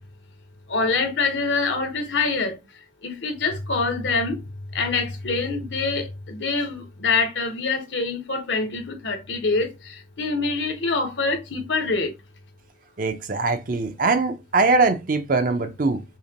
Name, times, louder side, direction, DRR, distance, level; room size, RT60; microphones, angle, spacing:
voice 1, 0.7-2.6 3.0-4.4 4.7-12.1, left 4 dB, 90° left, 1.0 m, -25 dB
voice 2, 13.0-16.0, right 3 dB, 50° right, 0.6 m, -22 dB
5.5 x 2.1 x 2.8 m
head